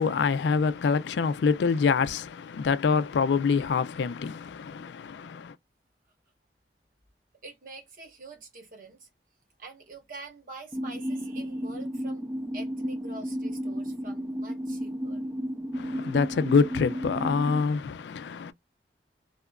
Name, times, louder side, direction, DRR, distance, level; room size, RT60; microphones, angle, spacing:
voice 1, 0.0-5.5 15.7-18.5, left 5 dB, 80° left, 0.3 m, -26 dB
voice 2, 7.4-9.1 9.6-12.2 12.5-15.3, right 3 dB, 50° right, 0.9 m, -46 dB
sound 1, 10.7-17.6, equal, 15° right, 0.4 m, -33 dB
2.8 x 2.3 x 2.2 m
head